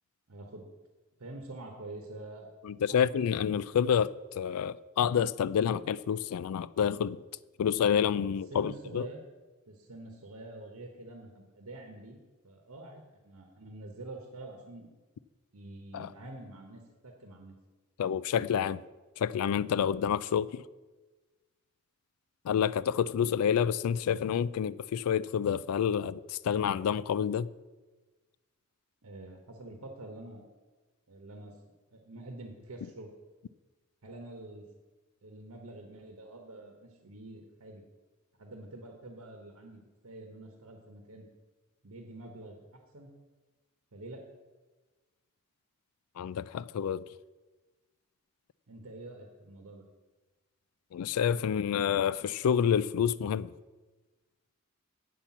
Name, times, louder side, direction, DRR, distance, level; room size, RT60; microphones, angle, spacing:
voice 1, 0.3-0.7 1.2-2.5 2.9-3.0 8.5-9.2 9.7-12.2 12.4-14.9 15.5-17.5 29.0-30.5 31.1-31.6 31.9-33.1 34.0-34.6 35.2-37.8 38.4-41.3 41.8-42.6 42.9-43.1 43.9-44.2 48.7-49.8, right 2 dB, 85° right, 1.1 m, -46 dB
voice 2, 2.6-7.2 7.6-9.1 15.9-16.1 18.0-18.8 19.2-20.6 22.4-27.5 46.2-47.1 50.9-53.5, left 8 dB, 90° left, 0.3 m, -28 dB
8.2 x 5.8 x 7.1 m
head